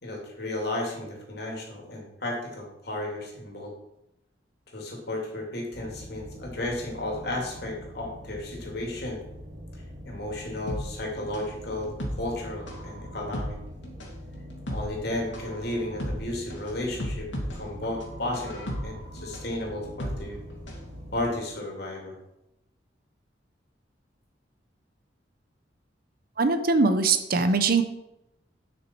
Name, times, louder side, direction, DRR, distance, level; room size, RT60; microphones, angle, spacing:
voice 1, 0.0-3.7 4.7-9.2 10.0-13.6 14.7-17.3 17.5-20.4 21.1-22.2, left 1 dB, 60° left, 0 dB, 2.7 m, -33 dB
sound 1, 5.7-21.3, equal, 75° right, 2.5 m, -43 dB
sound 2, 10.7-20.9 21.2-21.3, equal, 80° left, 2.4 m, -36 dB
voice 2, 26.4-27.8, right 3 dB, 50° right, 9 dB, 0.8 m, -22 dB
10.5 x 6.1 x 4.6 m, 0.86 s
head